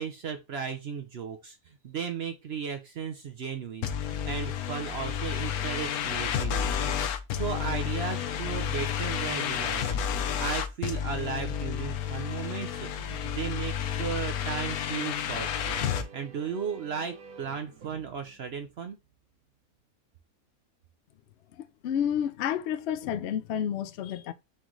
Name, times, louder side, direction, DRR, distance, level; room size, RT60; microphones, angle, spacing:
voice 1, 0.0-6.9 7.3-10.0 10.4-19.0, right 6 dB, 60° right, 0.7 m, -36 dB
sound 1, 3.8-16.1, left 8 dB, 85° left, 1.1 m, -31 dB
sound 2, 14.7-19.5, right 5 dB, 85° right, 1.3 m, -51 dB
voice 2, 21.6-24.3, left 9 dB, 65° left, 0.6 m, -30 dB
4.3 x 3.8 x 3.0 m
omnidirectional pair, 1.5 m